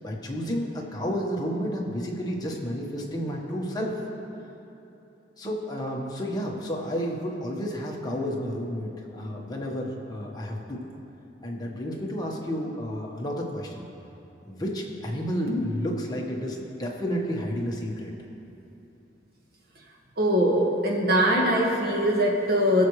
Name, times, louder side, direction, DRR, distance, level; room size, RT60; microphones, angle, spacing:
voice 1, 0.0-4.0 5.4-10.8 11.4-13.8 14.5-18.1, equal, 20° left, -2 dB, 1.3 m, -31 dB
voice 2, 20.2-22.9, equal, 55° right, -2 dB, 1.8 m, -22 dB
21.0 x 7.2 x 3.2 m, 2.9 s
head